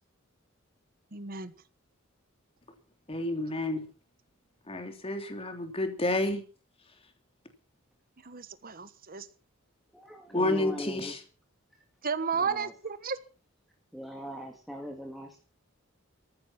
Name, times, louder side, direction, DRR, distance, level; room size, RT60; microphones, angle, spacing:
voice 1, 1.1-1.5 8.2-9.3 12.0-13.2, right 5 dB, 45° right, 1.3 m, -33 dB
voice 2, 3.1-3.8 4.7-6.4 10.3-11.2, left 2 dB, 30° left, 3.2 m, -30 dB
voice 3, 9.9-11.2 12.4-12.7 13.9-15.4, equal, ahead, 2.3 m, -40 dB
14.5 x 12.0 x 5.9 m
head